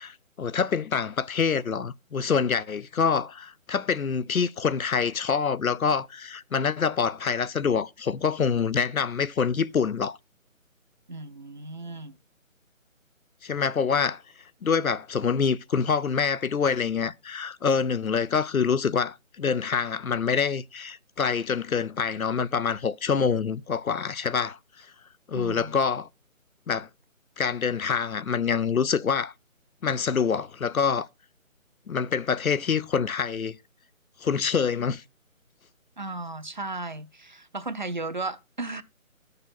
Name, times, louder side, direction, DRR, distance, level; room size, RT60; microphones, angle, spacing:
voice 1, 0.0-10.2 13.4-14.2 14.6-24.9 25.3-26.1 26.7-26.9 27.4-29.3 29.8-31.1 31.9-33.6 34.2-35.0, left 6 dB, 80° left, 0.8 m, -26 dB
voice 2, 11.1-12.2 25.3-25.8 36.0-38.8, right 3 dB, 35° right, 0.6 m, -35 dB
13.0 x 6.8 x 4.1 m
figure-of-eight pair, 160°, 41 cm